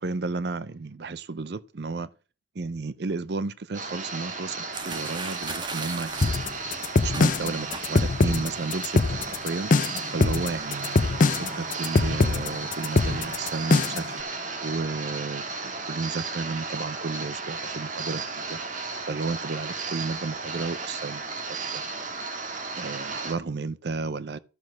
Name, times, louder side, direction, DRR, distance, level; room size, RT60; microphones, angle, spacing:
voice 1, 0.0-2.1 2.5-6.3 7.0-9.7 10.1-14.2 14.6-18.6 19.1-21.8 22.2-22.3 22.8-24.4, right 3 dB, 60° right, 0.6 m, -33 dB
sound 1, 3.7-23.3, right 4 dB, 40° right, 1.8 m, -34 dB
sound 2, 4.7-8.3 8.5-8.9 9.2-9.8, right 4 dB, 25° right, 1.2 m, -38 dB
sound 3, 6.2-14.1, left 3 dB, 45° left, 0.5 m, -22 dB
13.0 x 6.2 x 6.2 m
head